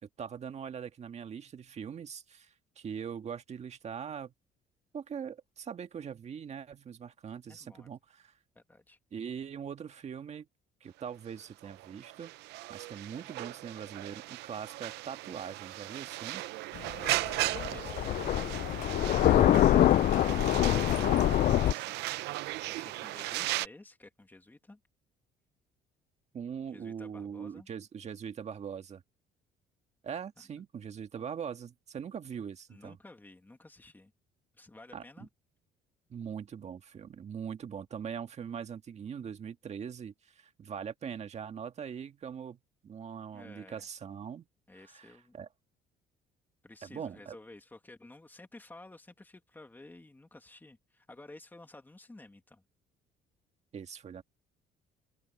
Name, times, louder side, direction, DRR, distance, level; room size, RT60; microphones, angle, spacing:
voice 1, 0.0-4.3 4.9-8.3 9.1-10.5 10.8-12.3 12.7-16.4 19.2-19.9 26.3-29.0 30.0-33.0 34.9-35.0 36.1-44.4 44.9-45.1 45.3-45.5 46.8-47.3 53.7-54.2, right 7 dB, 40° right, 1.8 m, -41 dB
voice 2, 7.5-7.9 8.5-9.0 17.0-18.4 19.0-24.8 26.7-27.7 30.4-30.6 31.2-31.4 32.3-34.1 34.5-35.3 43.3-43.8 44.7-45.3 46.6-52.6, left 2 dB, 10° left, 2.6 m, -53 dB
sound 1, 11.3-23.7, right 18 dB, 85° right, 0.7 m, -37 dB
Thunder, 16.8-21.7, left 13 dB, 55° left, 0.5 m, -25 dB
open air
cardioid pair, 110°, 17 cm